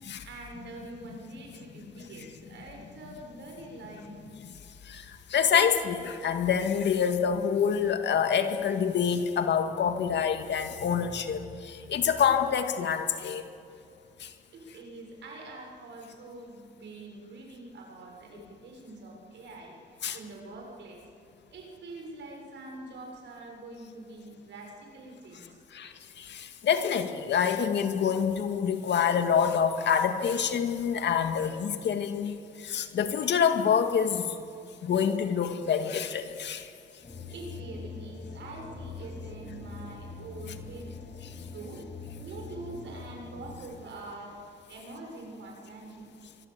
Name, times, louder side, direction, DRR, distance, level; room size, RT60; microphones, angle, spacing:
voice 1, 0.2-4.2 14.5-21.0 21.5-25.6 37.3-41.0 41.5-41.8 42.2-46.1, right 2 dB, 65° right, 1 dB, 7.0 m, -45 dB
voice 2, 4.9-13.4 14.2-14.3 20.0-20.2 25.7-32.3 32.6-34.4 34.8-36.7, left 7 dB, 65° left, 7 dB, 2.1 m, -27 dB
sound 1, 37.0-43.5, left 3 dB, 35° left, 7.0 m, -43 dB
25.0 x 23.0 x 8.4 m, 2.5 s
cardioid pair, 90°, 20 cm